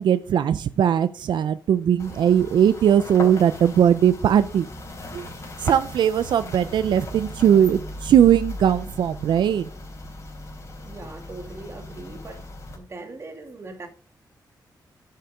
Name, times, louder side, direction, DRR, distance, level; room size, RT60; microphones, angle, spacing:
voice 1, 0.0-4.7 5.1-5.3 5.6-9.7, right 9 dB, 90° right, 0.5 m, -19 dB
sound 1, 2.0-12.8, left 1 dB, 40° left, 3.5 m, -38 dB
voice 2, 10.8-12.4 12.7-13.9, right 2 dB, 35° right, 2.5 m, -40 dB
10.5 x 6.7 x 5.0 m
wide cardioid pair, 135°, 8 cm